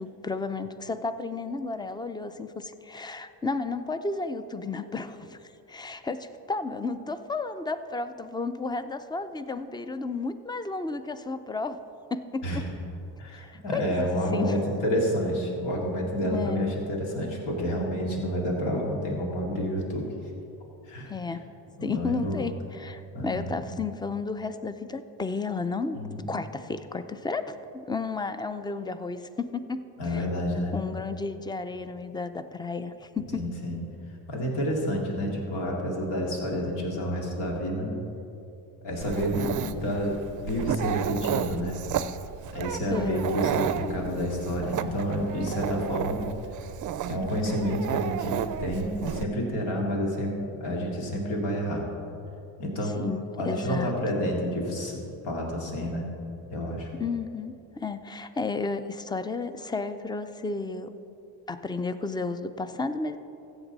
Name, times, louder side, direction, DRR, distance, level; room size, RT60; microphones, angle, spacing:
voice 1, 0.0-5.4 5.7-11.8 12.1-12.6 13.3-14.5 16.2-16.7 21.1-21.4 21.8-29.8 30.1-30.2 30.7-33.4 39.6-40.0 42.9-43.3 53.0-53.9 57.0-60.9 61.5-63.2, left 4 dB, 10° left, 11 dB, 0.4 m, -33 dB
voice 2, 13.2-20.0 20.8-21.1 21.8-22.4 23.1-23.5 25.9-26.3 30.0-30.8 33.3-33.8 34.3-37.9 38.8-41.8 42.5-46.2 47.1-50.3 50.6-51.8 52.6-53.0 53.4-56.1 56.5-56.9, equal, 75° left, -1 dB, 2.5 m, -29 dB
Dog, 39.0-49.2, right 10 dB, 45° right, 0.5 m, -32 dB
14.5 x 8.0 x 4.0 m, 2.8 s
cardioid pair, 95°, 42 cm